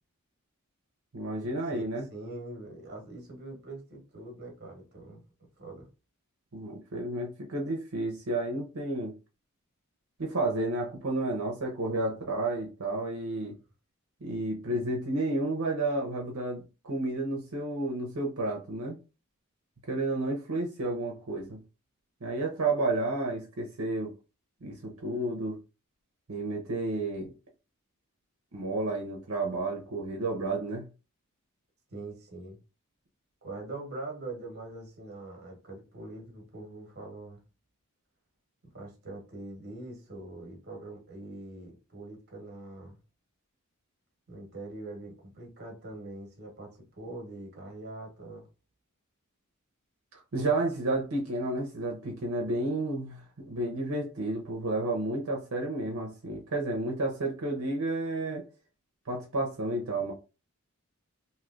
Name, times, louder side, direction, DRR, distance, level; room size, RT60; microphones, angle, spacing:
voice 1, 1.1-2.1 6.5-9.1 10.2-13.5 14.2-19.0 19.9-21.6 22.2-24.1 24.6-25.6 26.3-27.3 28.5-30.9 50.1-58.4 59.1-60.1, right 2 dB, 75° right, 0.8 m, -31 dB
voice 2, 2.1-5.2 5.6-5.9 31.9-32.6 33.4-37.4 38.7-43.0 44.3-48.5, right 2 dB, 50° right, 1.2 m, -43 dB
3.1 x 2.7 x 2.5 m
head